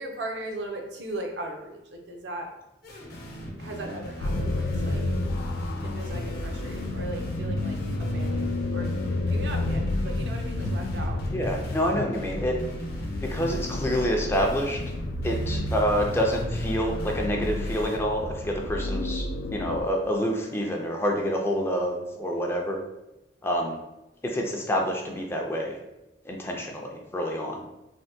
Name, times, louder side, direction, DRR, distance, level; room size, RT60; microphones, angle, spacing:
voice 1, 0.0-2.5 3.6-5.0 5.8-8.9 9.3-11.2, right 2 dB, 75° right, 2 dB, 0.5 m, -38 dB
sound 1, 2.8-18.0, equal, 60° left, 0.7 m, -39 dB
sound 2, 4.2-19.8, left 2 dB, 90° left, 0.3 m, -30 dB
voice 2, 11.3-12.6 13.2-14.8 15.2-22.8 23.4-23.8 24.2-25.8 26.2-27.6, equal, 15° left, 0 dB, 0.3 m, -27 dB
3.3 x 2.1 x 2.6 m, 0.94 s
head